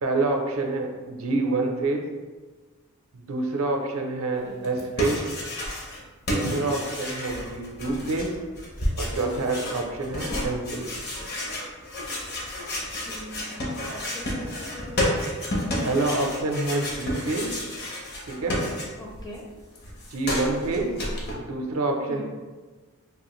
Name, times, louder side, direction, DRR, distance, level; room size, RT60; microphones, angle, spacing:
voice 1, 0.0-2.0 3.1-5.2 6.3-8.3 9.0-10.9 15.8-17.5 18.3-18.6 20.1-20.9 21.4-22.2, right 2 dB, 70° right, 2 dB, 0.5 m, -27 dB
sound 1, 4.6-6.0 6.3-19.2 19.5-21.3, left 1 dB, 50° left, 0.7 m, -31 dB
voice 2, 13.1-15.2 19.0-19.4 22.1-22.2, left 2 dB, 20° left, -1 dB, 0.5 m, -41 dB
3.4 x 2.4 x 3.0 m, 1.3 s
head